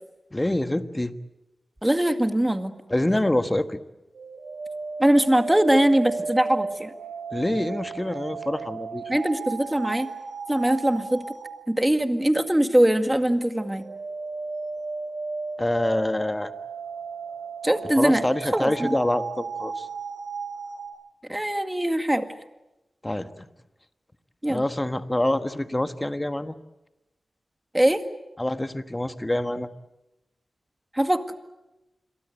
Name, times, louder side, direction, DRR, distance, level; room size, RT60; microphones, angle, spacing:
voice 1, 0.3-1.1 2.9-3.8 7.3-9.0 15.6-16.5 18.0-19.9 23.0-23.5 24.5-26.5 28.4-29.7, left 1 dB, 15° left, 10 dB, 1.4 m, -26 dB
voice 2, 1.8-2.7 5.0-6.9 9.1-10.1 10.5-11.3 11.7-13.9 17.6-18.2 18.5-18.9 21.3-22.3 24.4-24.6 27.7-28.0 30.9-31.3, right 1 dB, 10° right, 8 dB, 2.0 m, -22 dB
sound 1, 4.1-11.5 13.5-20.8, right 4 dB, 90° right, 5.5 m, -34 dB
27.5 x 23.0 x 8.0 m, 0.98 s
wide cardioid pair, 80°, 0 cm